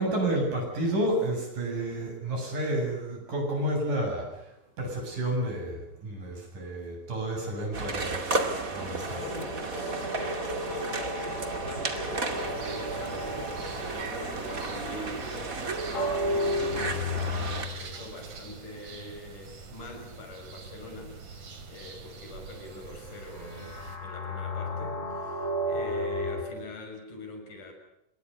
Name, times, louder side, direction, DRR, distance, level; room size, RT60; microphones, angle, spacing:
voice 1, 0.0-8.2 8.7-9.3, right 1 dB, 85° right, 2 dB, 9.7 m, -30 dB
sound 1, 7.7-17.7, right 3 dB, 30° right, 2.5 m, -34 dB
sound 2, 8.1-18.1 23.2-26.4, left 1 dB, 55° left, 6.0 m, -34 dB
voice 2, 8.8-13.6 14.1-15.5 16.1-27.7, left 2 dB, 80° left, 4 dB, 7.8 m, -44 dB
sound 3, 12.4-24.0, right 5 dB, 65° right, 4.5 m, -45 dB
27.0 x 23.0 x 6.8 m, 0.81 s
omnidirectional pair, 3.6 m